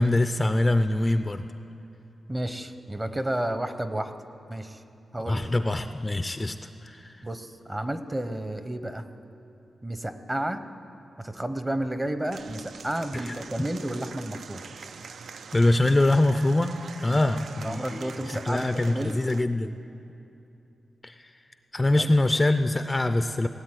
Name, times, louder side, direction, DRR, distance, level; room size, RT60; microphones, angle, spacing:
voice 1, 0.0-1.4 5.2-6.6 6.8-7.2 13.1-13.7 15.5-19.7 21.0-21.1 21.7-23.5, left 2 dB, 20° left, 9 dB, 0.4 m, -24 dB
voice 2, 2.3-4.1 4.5-4.8 5.1-5.4 7.2-9.1 9.8-10.6 11.2-14.6 17.1-19.2 21.9-22.1, right 1 dB, 15° right, 10 dB, 0.8 m, -31 dB
Applause / Crowd, 12.3-19.4, right 5 dB, 70° right, 0.4 m, -44 dB
17.5 x 8.1 x 9.7 m, 2.8 s
wide cardioid pair, 115°, 0 cm